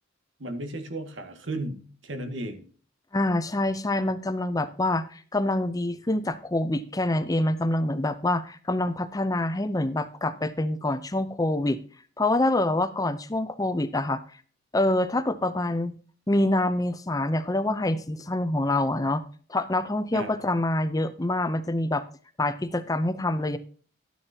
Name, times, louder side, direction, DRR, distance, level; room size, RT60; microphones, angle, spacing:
voice 1, 0.4-2.6 20.1-20.3, right 1 dB, 75° right, 6 dB, 2.0 m, -34 dB
voice 2, 3.1-11.8 12.2-14.2 14.7-15.9 16.3-19.2 19.5-22.0 22.4-23.6, left 1 dB, 20° left, 12 dB, 0.6 m, -26 dB
12.5 x 9.8 x 2.8 m, 0.42 s
head